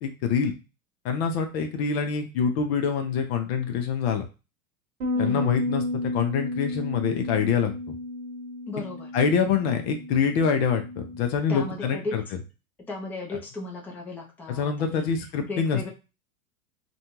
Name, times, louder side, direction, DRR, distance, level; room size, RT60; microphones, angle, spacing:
voice 1, 0.0-0.5 1.0-4.2 5.2-7.9 9.1-12.2 14.5-15.9, left 6 dB, 50° left, 5 dB, 0.6 m, -25 dB
Bass guitar, 5.0-11.3, left 1 dB, 70° right, 1.0 m, -32 dB
voice 2, 5.1-5.6 8.7-9.1 11.5-12.2 12.9-15.1 15.5-15.9, left 3 dB, 5° left, -2 dB, 0.6 m, -35 dB
2.5 x 2.3 x 3.0 m, 0.29 s
hypercardioid pair, 95°, 42 cm